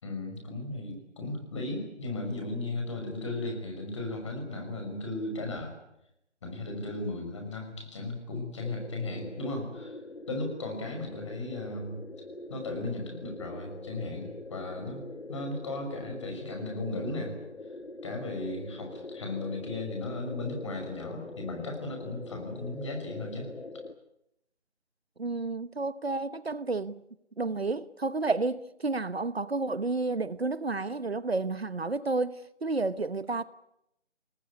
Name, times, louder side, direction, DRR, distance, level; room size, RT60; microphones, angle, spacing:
voice 1, 0.0-5.7 6.4-10.0 10.3-12.0 12.5-17.4 18.0-23.5, left 2 dB, 25° left, 6.0 m, -36 dB
sound 1, 8.6-23.9, left 2 dB, 75° left, 2.3 m, -43 dB
voice 2, 25.2-27.0 27.4-33.4, right 3 dB, 60° right, 1.1 m, -31 dB
27.5 x 19.5 x 9.7 m
figure-of-eight pair, 160°, 35 cm